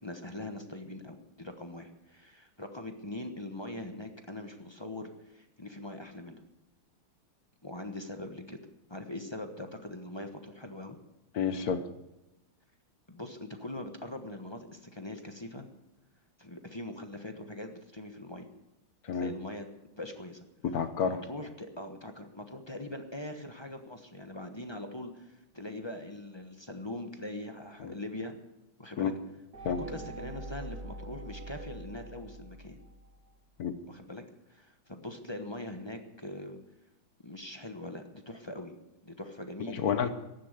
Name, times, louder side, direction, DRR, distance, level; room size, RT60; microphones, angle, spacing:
voice 1, 0.0-6.4 7.6-8.6 8.9-11.0 13.1-15.7 16.4-18.5 19.1-19.7 20.0-20.4 21.0-28.3 28.8-29.1 29.6-32.8 33.9-34.2 34.5-36.6 37.2-38.8 39.0-40.1, left 1 dB, 20° left, 5 dB, 0.8 m, -42 dB
voice 2, 11.3-11.8 19.1-19.3 20.6-21.2 27.8-27.9 29.0-29.1 29.6-29.8 33.6-33.7 39.7-40.1, left 7 dB, 55° left, 10 dB, 1.3 m, -29 dB
sound 1, 29.5-33.3, right 2 dB, 45° right, 2.5 m, -44 dB
15.5 x 11.0 x 6.6 m, 0.95 s
omnidirectional pair, 2.3 m